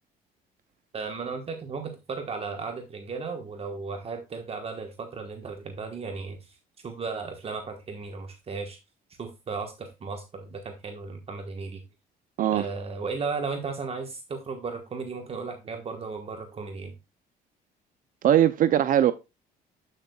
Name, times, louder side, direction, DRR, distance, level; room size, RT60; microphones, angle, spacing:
voice 1, 0.9-6.6 6.8-8.8 9.2-11.8 12.5-16.9, right 4 dB, 35° right, 1.3 m, -35 dB
voice 2, 18.2-19.1, right 11 dB, 55° right, 0.5 m, -20 dB
8.5 x 6.6 x 2.3 m
cardioid pair, 110°, 17 cm